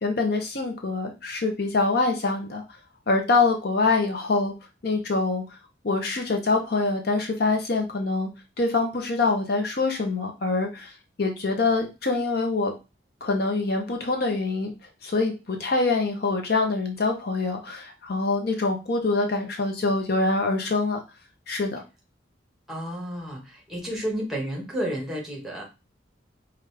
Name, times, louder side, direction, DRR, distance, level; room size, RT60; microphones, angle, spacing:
voice 1, 0.0-2.6 3.1-4.5 4.8-5.4 5.8-8.3 8.6-10.9 11.2-12.7 13.2-14.7 15.0-21.0 21.5-21.8, left 3 dB, 55° left, 3 dB, 0.6 m, -25 dB
voice 2, 22.7-25.6, equal, ahead, -2 dB, 1.1 m, -31 dB
5.0 x 2.4 x 3.2 m, 0.28 s
head